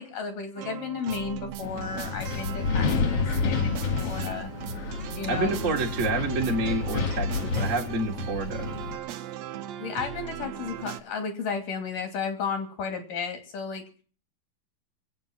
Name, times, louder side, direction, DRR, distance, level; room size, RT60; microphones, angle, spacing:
voice 1, 0.0-4.5 5.2-5.8 9.8-13.9, left 6 dB, 75° left, 5 dB, 4.1 m, -33 dB
sound 1, 0.6-11.0, right 10 dB, 70° right, 1.9 m, -39 dB
Wind, 1.6-9.0, left 4 dB, 55° left, 1.9 m, -30 dB
voice 2, 5.2-8.7, right 2 dB, 30° right, 0 dB, 1.7 m, -28 dB
24.5 x 8.6 x 5.9 m, 0.41 s
omnidirectional pair, 3.8 m